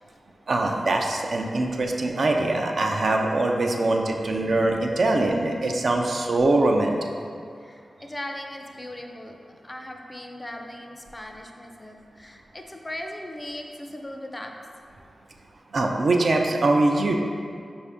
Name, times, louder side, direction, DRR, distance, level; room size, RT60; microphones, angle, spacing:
voice 1, 0.5-7.0 15.7-17.1, right 2 dB, 65° right, 2 dB, 0.4 m, -22 dB
voice 2, 7.6-9.4 9.6-14.5, left 1 dB, 25° left, 3 dB, 0.4 m, -38 dB
4.7 x 2.6 x 3.5 m, 2.3 s
cardioid pair, 45°, 0 cm